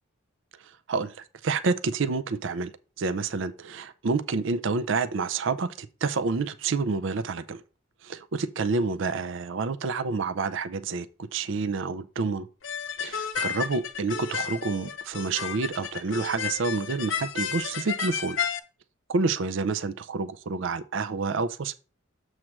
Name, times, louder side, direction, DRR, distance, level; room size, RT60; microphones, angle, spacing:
voice 1, 1.4-2.7 3.0-7.6 8.0-11.1 11.3-12.5 13.0-18.4 19.1-21.7, right 4 dB, 65° right, 0.5 m, -28 dB
sound 1, 12.6-18.6, left 7 dB, 65° left, 0.7 m, -32 dB
7.4 x 3.2 x 6.0 m
head